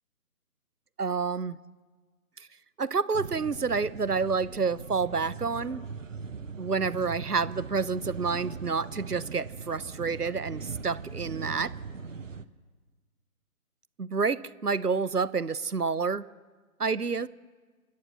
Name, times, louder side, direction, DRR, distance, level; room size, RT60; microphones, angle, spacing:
voice 1, 1.0-1.6 2.8-5.8 6.6-11.7 14.0-16.2 16.8-17.3, right 5 dB, 90° right, 19 dB, 0.9 m, -29 dB
sound 1, 3.1-12.5, right 5 dB, 55° right, 1.0 m, -40 dB
27.5 x 12.5 x 7.5 m, 1.4 s
figure-of-eight pair, 145°, 45 cm